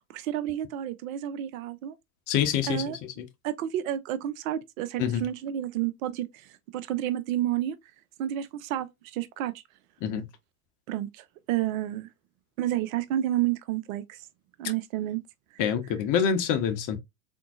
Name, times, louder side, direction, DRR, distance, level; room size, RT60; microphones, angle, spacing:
voice 1, 0.1-1.9 2.7-3.0 3.4-6.3 6.7-7.8 8.2-9.5 10.9-12.1 12.6-14.2 14.6-15.2, right 12 dB, 60° right, 0.6 m, -30 dB
voice 2, 2.3-2.8 5.0-5.3 10.0-10.3 15.6-17.0, left 8 dB, 40° left, 0.9 m, -26 dB
3.7 x 2.7 x 2.3 m
hypercardioid pair, 95°, 46 cm